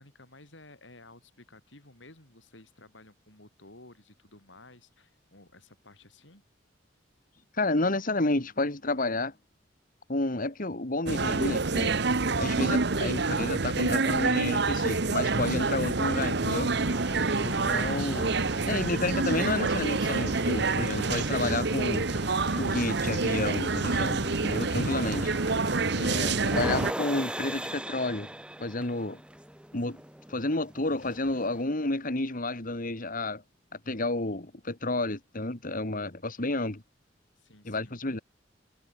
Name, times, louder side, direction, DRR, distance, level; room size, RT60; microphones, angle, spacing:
voice 1, 0.0-6.4 25.9-26.4 37.4-38.0, left 2 dB, 80° left, 6.9 m, -54 dB
voice 2, 7.6-9.3 10.1-12.0 12.4-16.7 17.4-22.0 22.5-25.3 26.0-28.3 28.6-29.2 29.7-30.0 30.3-33.4 33.9-36.8 37.6-38.2, left 2 dB, 50° left, 2.3 m, -30 dB
sound 1, 11.1-26.9, right 3 dB, 65° right, 1.2 m, -27 dB
sound 2, 16.7-31.7, right 1 dB, 5° right, 3.7 m, -40 dB
open air
head